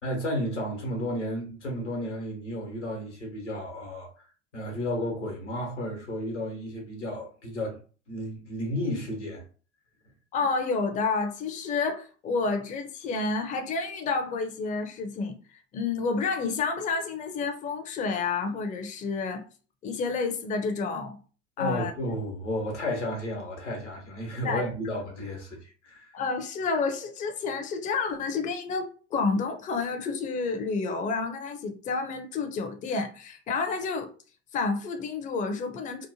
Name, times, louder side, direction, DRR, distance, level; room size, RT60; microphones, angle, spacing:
voice 1, 0.0-4.1 4.5-7.8 8.1-9.4 21.6-25.6 25.8-26.0, left 1 dB, 90° left, 1.0 m, -32 dB
voice 2, 10.3-19.4 19.8-21.2 21.6-21.9 24.4-24.7 26.1-34.1 34.5-36.1, left 4 dB, 20° left, 0.5 m, -30 dB
2.8 x 2.1 x 2.7 m
figure-of-eight pair, 70°, 35 cm